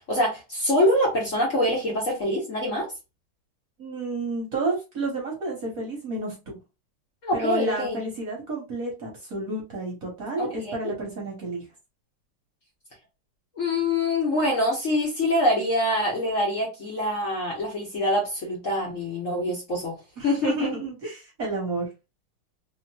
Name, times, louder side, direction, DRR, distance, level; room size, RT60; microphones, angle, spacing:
voice 1, 0.1-2.9 7.2-8.0 10.4-10.9 13.6-20.0 20.2-20.7, left 1 dB, 45° left, 1.2 m, -25 dB
voice 2, 3.8-6.6 7.3-11.6 20.2-21.9, right 2 dB, 50° right, 1.3 m, -31 dB
3.3 x 2.9 x 2.2 m
omnidirectional pair, 2.3 m